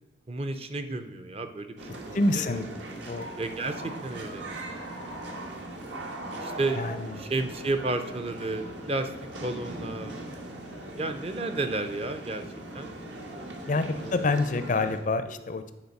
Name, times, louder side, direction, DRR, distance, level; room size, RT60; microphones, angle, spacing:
voice 1, 0.3-2.6 3.4-4.4 6.4-6.8 7.2-9.1 9.4-10.1 11.0-12.4 12.7-13.0 13.9-14.3, right 2 dB, 30° right, 8 dB, 0.5 m, -32 dB
sound 1, 1.8-15.0, right 1 dB, 70° right, 1.3 m, -40 dB
voice 2, 2.1-2.7 3.1-3.3 6.8-7.2 13.7-15.7, left 2 dB, 40° left, 10 dB, 0.4 m, -27 dB
9.6 x 4.1 x 5.3 m, 1.1 s
head